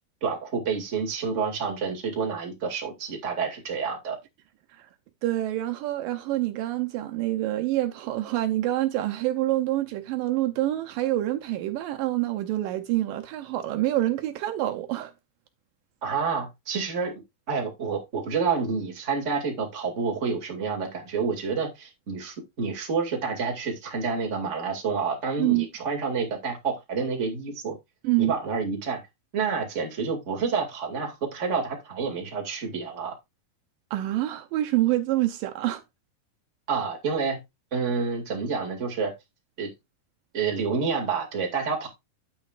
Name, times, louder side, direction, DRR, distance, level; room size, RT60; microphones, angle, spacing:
voice 1, 0.2-4.2 16.0-17.1 17.5-27.8 28.2-29.0 29.3-33.1 36.7-37.4 37.7-39.1 39.6-39.7 40.3-41.9, right 5 dB, 25° right, 2.1 m, -28 dB
voice 2, 5.2-15.1 25.4-25.7 28.0-28.3 33.9-35.8, right 15 dB, 80° right, 2.3 m, -26 dB
9.6 x 8.8 x 2.5 m
omnidirectional pair, 4.1 m